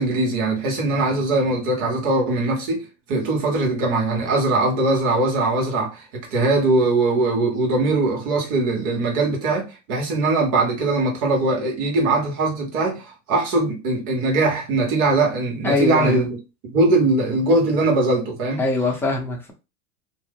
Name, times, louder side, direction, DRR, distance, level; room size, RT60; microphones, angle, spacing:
voice 1, 0.0-16.3 16.7-18.6, right 2 dB, 60° right, 1.3 m, -21 dB
voice 2, 15.6-16.3 18.6-19.5, left 3 dB, 5° left, 0.5 m, -22 dB
2.6 x 2.0 x 3.5 m
hypercardioid pair, 100°, 48 cm